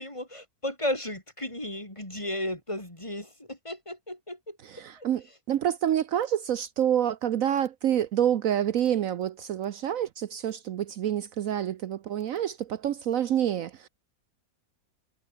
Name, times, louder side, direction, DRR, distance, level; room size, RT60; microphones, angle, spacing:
voice 1, 0.0-4.6 5.0-5.1, left 1 dB, 20° left, 4.3 m, -34 dB
voice 2, 4.6-13.9, right 10 dB, 65° right, 1.1 m, -27 dB
omnidirectional pair, 1.6 m